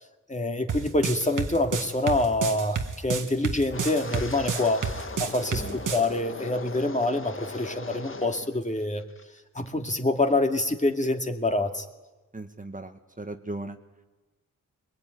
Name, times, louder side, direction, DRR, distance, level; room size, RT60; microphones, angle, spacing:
voice 1, 0.3-4.8 5.2-9.0 9.6-11.8, left 2 dB, 20° left, 5 dB, 2.2 m, -26 dB
sound 1, 0.7-6.1, right 5 dB, 70° right, 1.8 m, -30 dB
Wind, 3.7-8.5 8.8-9.2 9.7-9.9, left 3 dB, 40° left, 1.6 m, -39 dB
voice 2, 12.3-13.8, right 2 dB, 25° right, 6 dB, 1.5 m, -37 dB
23.0 x 21.5 x 9.4 m, 1.2 s
cardioid pair, 75°, 33 cm